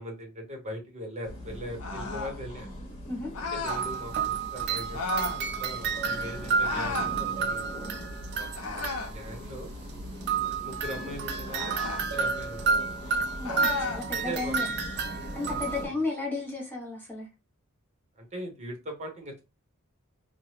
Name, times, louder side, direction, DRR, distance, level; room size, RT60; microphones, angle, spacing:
voice 1, 0.0-2.7 3.5-7.8 8.4-9.7 10.3-13.1 14.1-14.6 15.4-15.6 18.2-19.4, equal, 30° right, 0.9 m, -41 dB
sound 1, 1.2-15.9, equal, 30° left, 1.1 m, -41 dB
sound 2, 1.8-2.4 3.3-3.9 4.9-5.4 6.6-7.1 8.5-9.2 11.5-12.1 13.4-14.0, left 4 dB, 80° left, 0.7 m, -33 dB
sound 3, 3.7-9.3 10.2-15.8, right 5 dB, 50° right, 0.4 m, -31 dB
voice 2, 13.4-14.7 15.1-17.3, left 3 dB, 10° left, 0.7 m, -34 dB
2.9 x 2.2 x 3.0 m
head